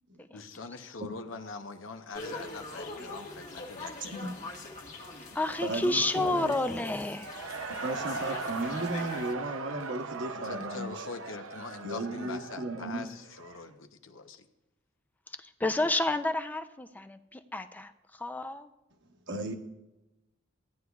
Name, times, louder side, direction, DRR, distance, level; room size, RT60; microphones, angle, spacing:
voice 1, 0.3-4.1 10.4-14.5, left 4 dB, 75° left, 8 dB, 0.8 m, -43 dB
sound 1, 2.1-9.3, left 2 dB, 40° left, 1.3 m, -42 dB
voice 2, 4.0-4.3 5.6-6.6 7.8-11.0 11.8-13.1 19.3-19.5, right 2 dB, 65° right, 5 dB, 1.0 m, -35 dB
voice 3, 5.3-7.3 15.3-18.7, left 2 dB, 10° left, 9 dB, 0.4 m, -30 dB
Cheering / Crowd, 7.0-13.7, right 4 dB, 80° right, 0.6 m, -39 dB
16.0 x 9.5 x 2.3 m, 0.99 s
head